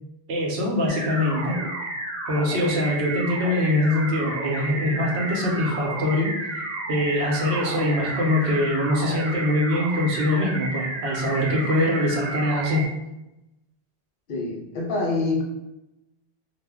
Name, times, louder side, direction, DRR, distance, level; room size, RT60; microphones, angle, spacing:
voice 1, 0.3-1.6 2.3-6.5 6.9-12.8, left 1 dB, 80° right, -1 dB, 1.0 m, -23 dB
sound 1, 0.9-12.9, right 2 dB, 40° right, 0.9 m, -32 dB
voice 2, 14.3-15.4, left 3 dB, 60° left, -1 dB, 0.7 m, -26 dB
2.4 x 2.1 x 3.4 m, 0.93 s
omnidirectional pair, 1.1 m